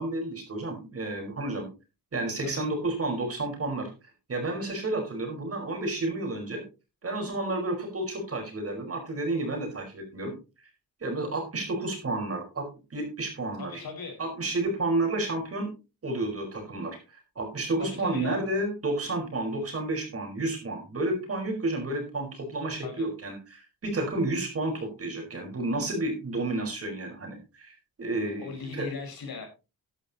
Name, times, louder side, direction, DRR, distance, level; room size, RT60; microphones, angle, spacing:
voice 1, 0.0-1.7 2.1-3.9 4.3-6.6 7.0-10.3 11.0-13.7 14.2-15.7 16.0-17.0 17.3-28.9, right 2 dB, 40° right, 2 dB, 5.0 m, -31 dB
voice 2, 13.6-14.2 17.8-18.5 22.8-23.1 28.2-29.5, left 4 dB, 70° left, 3 dB, 5.3 m, -38 dB
13.5 x 11.5 x 3.0 m, 0.29 s
wide cardioid pair, 165°, 37 cm